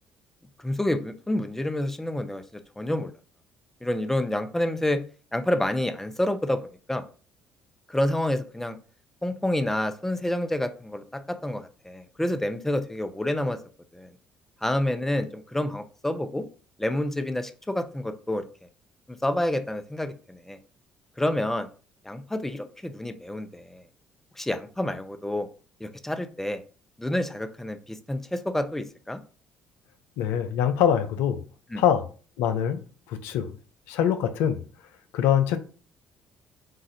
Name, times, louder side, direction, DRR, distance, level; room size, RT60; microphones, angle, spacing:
voice 1, 0.6-2.4 2.8-3.1 3.8-5.0 5.3-6.6 6.9-7.0 7.9-8.8 9.2-13.6 13.9-14.1 14.6-16.4 16.8-18.5 19.2-20.6 21.2-21.7 22.0-23.8 24.4-25.5 25.8-26.6 27.0-29.2 31.7-31.8, left 1 dB, 10° left, 0.7 m, -28 dB
voice 2, 30.2-31.4 31.7-32.0 32.4-32.8 33.1-33.6 33.9-34.7 35.1-35.6, left 9 dB, 75° left, 0.5 m, -23 dB
7.4 x 2.5 x 2.7 m
hypercardioid pair, 55°, 4 cm